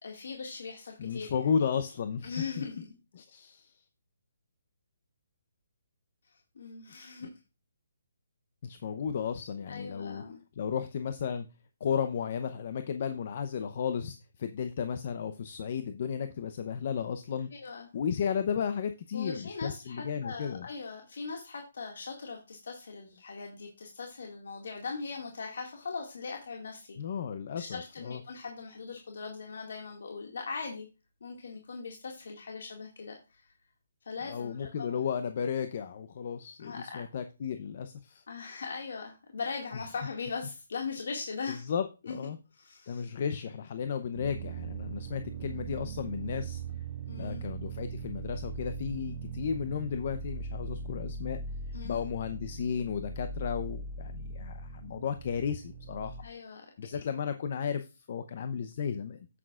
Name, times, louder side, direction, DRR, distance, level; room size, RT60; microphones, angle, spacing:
voice 1, 0.0-1.5 2.2-2.9 6.2-7.3 9.7-10.4 17.5-17.9 19.1-27.0 27.5-30.9 31.2-33.5 34.0-35.0 36.6-37.0 38.3-41.6 42.1-42.2 42.5-43.1 47.1-47.4 51.7-52.1 56.2-56.7, left 5 dB, 70° left, 1 dB, 2.0 m, -40 dB
voice 2, 1.0-2.6 3.1-3.7 6.9-7.0 7.2-7.3 8.6-10.2 10.6-11.5 11.8-17.5 17.9-20.7 27.0-28.2 34.3-38.2 41.5-42.4 42.9-46.6 47.2-51.4 51.8-56.2 56.8-59.3, left 7 dB, 45° left, 9 dB, 0.7 m, -34 dB
sound 1, 44.1-56.2, right 4 dB, 25° right, 1.6 m, -40 dB
9.3 x 8.5 x 2.4 m, 0.29 s
hypercardioid pair, 165°, 0 cm